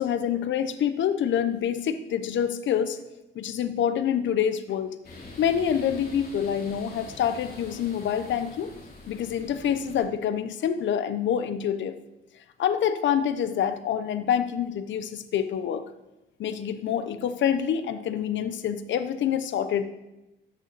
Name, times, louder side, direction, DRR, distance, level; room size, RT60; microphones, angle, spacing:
voice 1, 0.0-3.0 3.3-4.9 5.4-8.7 9.1-12.0 12.6-15.9 16.4-19.8, left 9 dB, 70° left, 11 dB, 0.9 m, -26 dB
sound 1, 5.0-10.0, left 2 dB, 50° left, 4.0 m, -44 dB
13.5 x 8.3 x 4.1 m, 0.96 s
cardioid pair, 90°, 20 cm